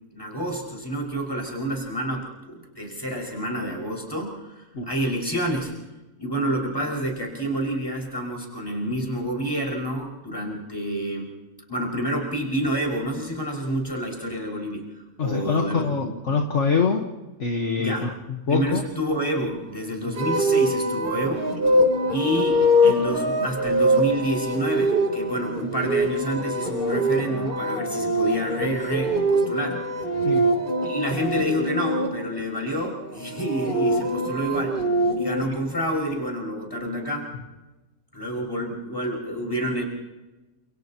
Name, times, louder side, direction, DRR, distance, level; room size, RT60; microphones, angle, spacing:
voice 1, 0.1-5.7 6.2-11.3 11.7-14.9 15.2-15.8 16.3-16.4 17.8-18.1 18.5-21.8 22.1-29.8 30.8-34.8 35.2-37.3 38.1-39.8, equal, 15° left, -1 dB, 5.9 m, -28 dB
voice 2, 15.2-17.1 17.4-18.8 20.0-20.1 30.2-30.5 35.4-35.6, left 5 dB, 55° left, 2 dB, 1.7 m, -25 dB
sound 1, 20.1-32.1 33.2-35.4, equal, 35° right, 3.7 m, -23 dB
30.0 x 28.5 x 3.0 m, 1.1 s
omnidirectional pair, 1.6 m